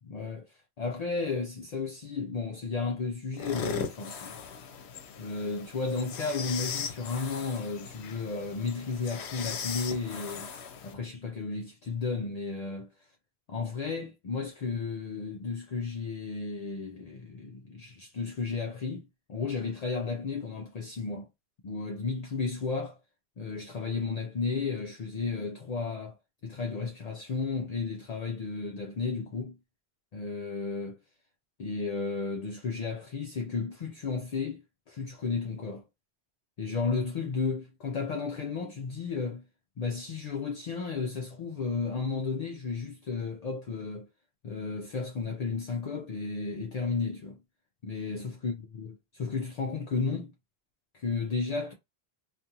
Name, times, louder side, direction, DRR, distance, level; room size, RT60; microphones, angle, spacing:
voice 1, 0.0-4.4 5.2-10.5 10.8-13.1 13.5-21.3 21.6-23.0 23.4-26.2 26.4-29.6 30.1-31.0 31.6-35.8 36.6-39.4 39.8-44.1 44.4-47.4 47.8-50.3 50.9-51.7, left 4 dB, 55° left, 0.4 m, -33 dB
sound 1, 3.3-10.9, left 6 dB, 80° left, 0.9 m, -39 dB
2.5 x 2.4 x 2.8 m
omnidirectional pair, 1.1 m